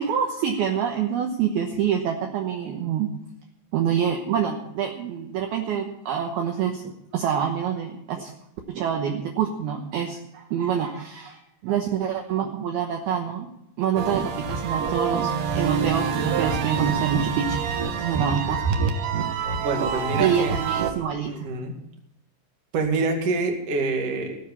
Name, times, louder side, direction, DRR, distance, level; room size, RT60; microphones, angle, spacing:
voice 1, 0.0-3.1 3.7-8.3 8.7-13.5 13.8-17.6 18.0-18.7 20.2-21.5, right 8 dB, 70° right, 3 dB, 2.5 m, -26 dB
sound 1, 14.0-20.9, right 6 dB, 90° right, 1.7 m, -26 dB
voice 2, 19.6-20.6 21.2-21.8 22.7-24.4, right 3 dB, 45° right, 2 dB, 2.3 m, -26 dB
18.5 x 7.5 x 7.2 m, 0.83 s
omnidirectional pair, 5.5 m